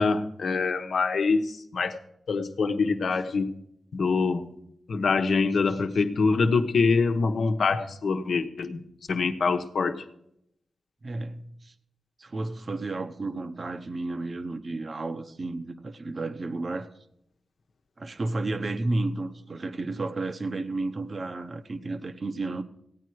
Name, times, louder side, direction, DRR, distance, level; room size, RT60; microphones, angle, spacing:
voice 1, 0.0-2.0 2.3-3.5 3.9-4.5 4.9-8.8 9.1-10.0, left 4 dB, 70° left, 6 dB, 1.0 m, -25 dB
voice 2, 11.0-11.7 12.2-16.9 18.0-22.6, right 2 dB, 50° right, 9 dB, 0.9 m, -32 dB
16.0 x 9.4 x 4.7 m, 0.77 s
cardioid pair, 55°, 0 cm